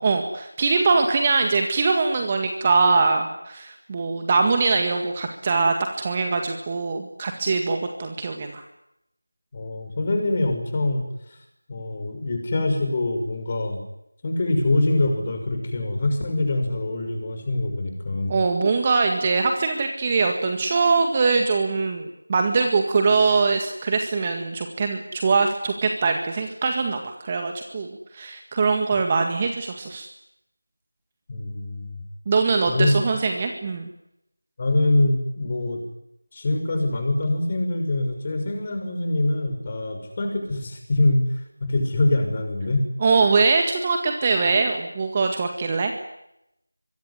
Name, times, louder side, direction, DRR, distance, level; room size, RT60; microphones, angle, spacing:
voice 1, 0.0-8.6 18.3-27.9 28.1-30.1 32.3-33.9 43.0-45.9, right 4 dB, 20° right, 4 dB, 1.9 m, -22 dB
voice 2, 9.5-11.0 11.7-13.8 14.2-18.3 31.3-32.0 32.7-33.0 34.6-35.8 36.3-41.2 41.7-42.8, left 2 dB, 25° left, 5 dB, 6.0 m, -24 dB
25.0 x 23.0 x 9.9 m, 0.82 s
figure-of-eight pair, 170°, 0 cm